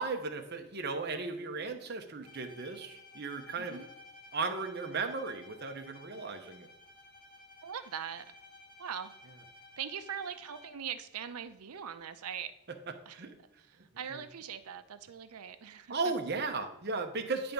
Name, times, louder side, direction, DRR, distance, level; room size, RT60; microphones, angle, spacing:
voice 1, 0.0-3.8 4.3-6.7 13.1-13.3 14.1-14.2 15.9-17.5, right 4 dB, 45° right, 6 dB, 0.8 m, -36 dB
Bowed string instrument, 2.2-11.0, left 2 dB, 40° left, 1.5 m, -55 dB
voice 2, 3.6-3.9 7.6-8.3 8.8-9.1 9.8-12.5 13.1-13.2 13.7-15.9, right 8 dB, 85° right, 10 dB, 0.6 m, -41 dB
10.0 x 3.4 x 5.3 m, 0.89 s
head